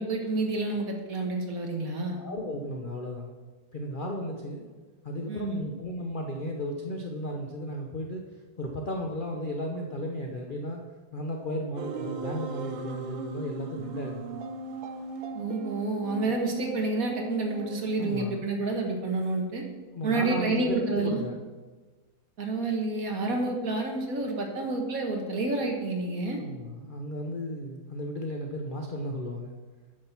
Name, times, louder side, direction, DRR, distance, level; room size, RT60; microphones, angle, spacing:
voice 1, 0.0-2.2 5.3-5.6 15.3-19.6 20.0-21.2 22.4-26.4, right 2 dB, 50° right, 2 dB, 1.6 m, -29 dB
voice 2, 2.2-3.3 3.7-4.6 5.0-8.2 8.6-10.8 11.1-14.4 18.0-18.4 19.9-21.4 26.4-29.6, equal, 50° left, 1 dB, 0.6 m, -34 dB
sound 1, 11.8-18.1, right 4 dB, 85° right, 1.5 m, -38 dB
9.3 x 6.6 x 5.8 m, 1.3 s
omnidirectional pair, 2.1 m